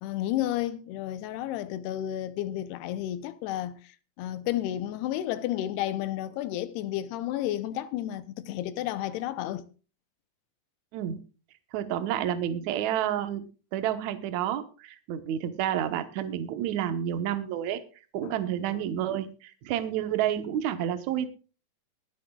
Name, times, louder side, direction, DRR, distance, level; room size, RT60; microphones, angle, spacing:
voice 1, 0.0-9.7 18.2-18.3 18.7-18.8, left 13 dB, 80° left, 2.5 m, -32 dB
voice 2, 11.7-13.4 13.7-17.8 18.1-21.3, right 10 dB, 90° right, 1.6 m, -30 dB
23.0 x 9.6 x 2.3 m
omnidirectional pair, 5.0 m